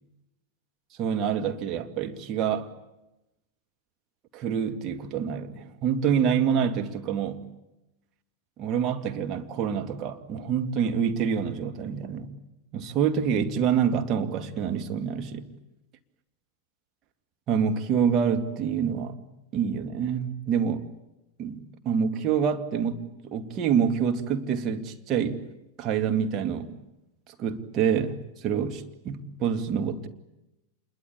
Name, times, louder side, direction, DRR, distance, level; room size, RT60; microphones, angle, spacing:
voice 1, 1.0-2.7 4.3-7.5 8.6-12.3 12.7-15.5 17.5-19.2 19.5-20.9 21.4-25.5 25.8-26.8 27.3-30.1, right 7 dB, 35° right, 2.3 m, -27 dB
27.5 x 22.5 x 8.6 m
figure-of-eight pair, 90°, 0 cm